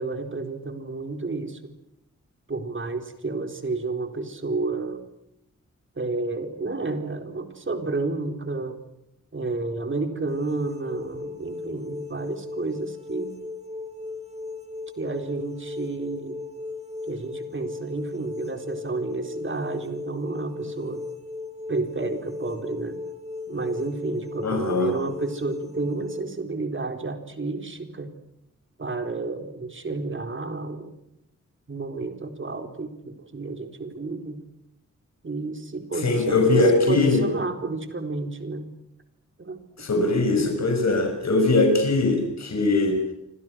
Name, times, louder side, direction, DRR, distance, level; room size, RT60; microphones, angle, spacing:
voice 1, 0.0-1.7 2.5-5.0 6.0-8.8 9.3-13.3 15.0-16.4 17.1-21.0 21.7-23.0 23.5-28.1 28.8-30.9 31.7-34.4 35.2-38.7 39.4-39.9 40.3-40.5, right 3 dB, 40° right, 6 dB, 4.1 m, -31 dB
sound 1, 10.3-26.2, left 3 dB, 20° right, 4.6 m, -37 dB
voice 2, 24.4-24.9 35.9-37.2 39.8-43.1, left 2 dB, 65° left, 4 dB, 6.1 m, -21 dB
29.5 x 25.5 x 6.4 m, 0.80 s
wide cardioid pair, 120°, 29 cm